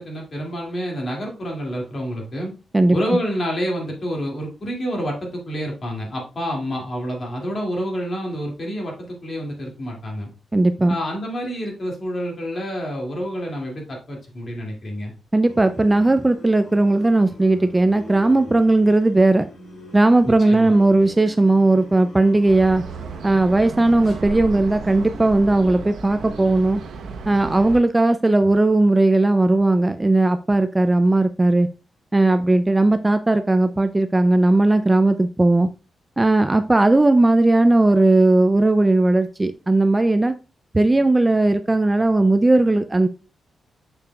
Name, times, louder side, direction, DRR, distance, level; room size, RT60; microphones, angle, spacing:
voice 1, 0.0-2.5 2.9-10.3 10.9-15.1 20.2-20.7, equal, 40° left, 0 dB, 2.2 m, -28 dB
voice 2, 2.7-3.2 10.5-11.0 15.3-19.5 19.9-22.8 23.2-26.8 27.3-31.7 32.1-35.7 36.2-40.3 40.7-43.1, right 2 dB, 15° right, 10 dB, 0.3 m, -17 dB
sound 1, 15.5-24.4, left 2 dB, 70° left, 1.9 m, -43 dB
sound 2, 22.5-27.8, right 5 dB, 85° right, 0.8 m, -34 dB
6.8 x 6.7 x 2.3 m, 0.31 s
wide cardioid pair, 130°, 0 cm